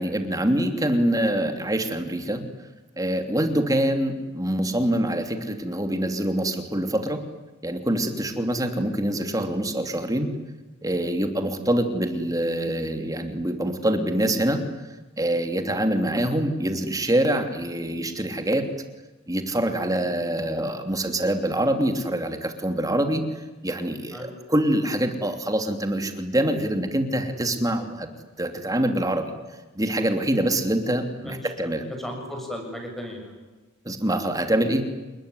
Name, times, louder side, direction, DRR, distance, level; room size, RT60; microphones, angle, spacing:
voice 1, 0.0-2.4 3.0-7.2 7.6-10.3 10.8-14.6 15.2-18.7 19.3-23.2 23.6-28.1 28.4-29.3 29.7-31.8 33.8-34.9, right 1 dB, 15° right, 6 dB, 2.8 m, -25 dB
voice 2, 31.2-31.7 32.0-33.3, equal, ahead, 2 dB, 7.0 m, -36 dB
28.5 x 20.5 x 9.9 m, 1.2 s
head